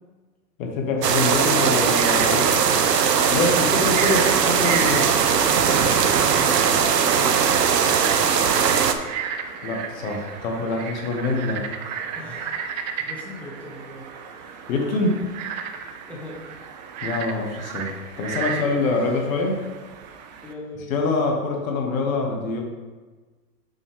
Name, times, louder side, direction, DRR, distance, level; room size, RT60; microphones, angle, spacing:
voice 1, 0.6-2.4 3.3-5.0 9.6-11.6 14.7-15.3 17.0-19.6 20.9-22.6, left 3 dB, 55° left, 1 dB, 1.7 m, -25 dB
sound 1, 1.0-8.9, right 7 dB, 80° right, 0.8 m, -19 dB
Frog, 1.8-20.5, right 7 dB, 30° right, 0.4 m, -34 dB
voice 2, 2.2-3.0 4.9-7.7 12.1-12.5 12.8-14.1 14.4-14.7 16.1-16.4 18.8-19.0 20.4-20.9, left 1 dB, 5° left, -5 dB, 1.3 m, -38 dB
6.4 x 6.3 x 3.5 m, 1.3 s
hypercardioid pair, 120°, 49 cm